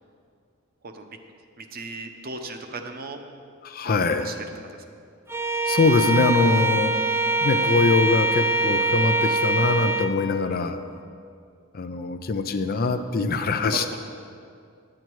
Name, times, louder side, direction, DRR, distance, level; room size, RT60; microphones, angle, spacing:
voice 1, 0.8-1.2 1.6-3.2 3.8-4.8 13.7-14.0, right 3 dB, 45° right, 5 dB, 0.8 m, -37 dB
voice 2, 3.6-4.3 5.7-6.9 7.4-10.8 11.7-14.0, left 3 dB, 45° left, 8 dB, 0.5 m, -23 dB
Bowed string instrument, 5.3-10.2, right 2 dB, 10° right, 0.4 m, -23 dB
9.8 x 9.0 x 4.6 m, 2.3 s
head